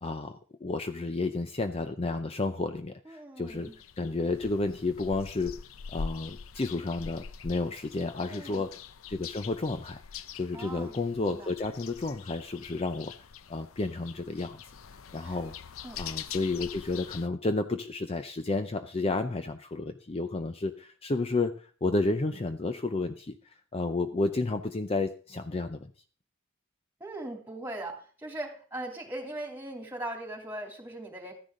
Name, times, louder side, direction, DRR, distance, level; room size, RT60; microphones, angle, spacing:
voice 1, 0.0-5.6 5.9-8.8 9.1-10.0 10.4-13.1 13.5-14.6 15.1-15.5 16.0-25.9, left 3 dB, 30° left, 9 dB, 0.5 m, -31 dB
voice 2, 3.0-3.8 8.2-8.6 10.5-10.9 11.2-11.5 15.2-15.4 15.8-16.0 27.0-31.3, right 1 dB, 10° right, 2 dB, 2.9 m, -40 dB
sound 1, 3.5-17.3, left 6 dB, 75° left, 0.6 m, -44 dB
13.5 x 10.0 x 3.8 m, 0.41 s
head